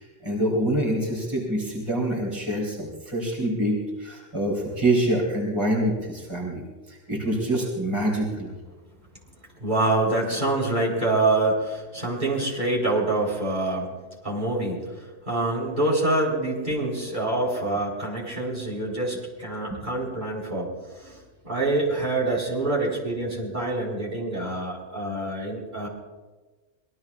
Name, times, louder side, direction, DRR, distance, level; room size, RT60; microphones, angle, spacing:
voice 1, 0.0-6.6 6.9-8.5, right 1 dB, 20° right, -3 dB, 4.1 m, -26 dB
voice 2, 9.6-13.9 14.2-21.2 21.4-25.9, right 2 dB, 40° right, -3 dB, 4.4 m, -26 dB
26.5 x 21.5 x 2.5 m, 1.3 s
omnidirectional pair, 1.3 m